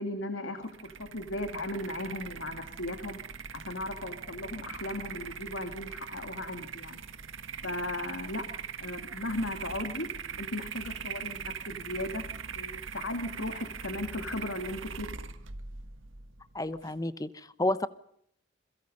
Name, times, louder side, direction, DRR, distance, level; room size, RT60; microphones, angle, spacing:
voice 1, 0.0-3.2 3.5-7.0 7.6-8.5 8.8-10.1 10.4-12.3 12.5-15.1, left 1 dB, 80° left, 7 dB, 2.3 m, -36 dB
sound 1, 0.6-17.0, right 6 dB, 85° right, 1.7 m, -41 dB
voice 2, 16.5-17.9, left 1 dB, 20° left, 14 dB, 0.9 m, -31 dB
28.5 x 22.5 x 5.4 m, 0.70 s
head